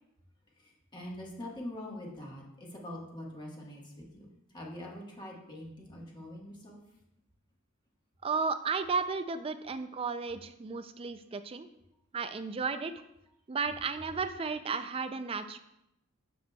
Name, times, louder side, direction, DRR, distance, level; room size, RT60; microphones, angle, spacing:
voice 1, 0.6-6.8, left 1 dB, 20° left, -3 dB, 1.4 m, -44 dB
voice 2, 8.2-11.7 12.1-12.9 13.5-15.6, right 5 dB, 25° right, 10 dB, 0.3 m, -33 dB
7.6 x 6.6 x 2.3 m, 0.83 s
head